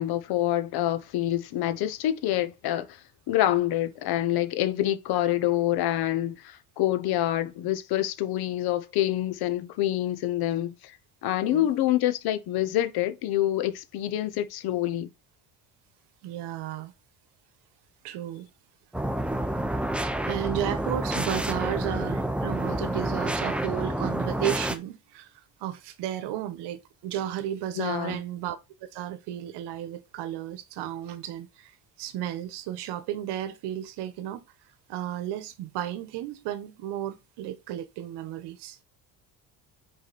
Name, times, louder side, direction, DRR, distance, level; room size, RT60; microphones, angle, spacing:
voice 1, 0.0-3.0 3.3-11.0 11.2-15.1 27.8-28.2, left 13 dB, 65° left, 0.9 m, -26 dB
voice 2, 16.2-16.9 18.0-18.5 19.0-19.1 20.3-25.3 25.6-31.7 32.0-34.4 34.9-38.8, right 12 dB, 75° right, 1.1 m, -33 dB
sound 1, 18.9-24.8, right 1 dB, 5° right, 0.6 m, -29 dB
5.1 x 4.8 x 4.1 m
cardioid pair, 120°, 41 cm